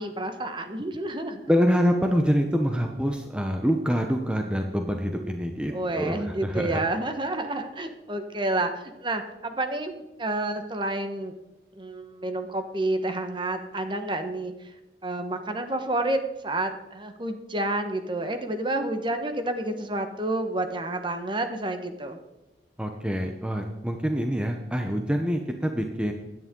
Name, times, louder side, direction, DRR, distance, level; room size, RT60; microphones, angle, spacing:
voice 1, 0.0-1.5 5.7-11.3 11.8-14.7 15.0-22.2, right 2 dB, 30° right, 7 dB, 1.3 m, -29 dB
voice 2, 1.5-6.8 22.8-26.1, equal, 5° right, 3 dB, 0.9 m, -26 dB
16.5 x 11.0 x 3.8 m, 1.0 s
head